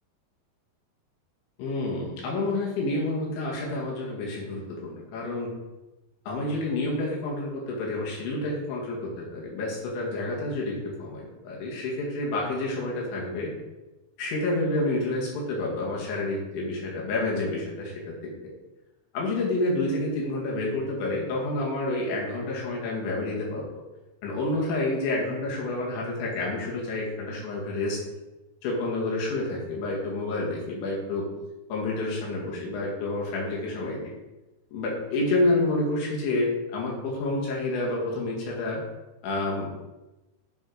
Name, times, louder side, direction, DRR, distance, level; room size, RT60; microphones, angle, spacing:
voice 1, 1.6-5.5 6.3-13.5 14.2-18.2 19.1-23.8 24.2-28.0 28.6-31.3 31.7-34.1 34.7-38.8 39.2-39.8, left 2 dB, 85° left, -3 dB, 4.2 m, -29 dB
9.8 x 4.0 x 4.9 m, 1.1 s
omnidirectional pair, 5.1 m